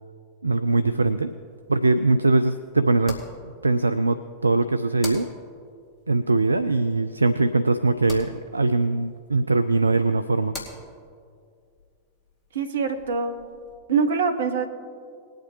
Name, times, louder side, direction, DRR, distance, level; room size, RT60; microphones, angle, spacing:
voice 1, 0.4-1.3 1.7-3.2 3.6-5.3 6.1-10.5, right 3 dB, 80° right, 11 dB, 0.3 m, -21 dB
sound 1, 0.9-13.8, left 3 dB, 25° left, 2.6 m, -45 dB
voice 2, 12.5-13.4 13.9-14.7, right 5 dB, 65° right, 7 dB, 1.0 m, -24 dB
21.0 x 8.9 x 3.1 m, 2.2 s
figure-of-eight pair, 90°, 0 cm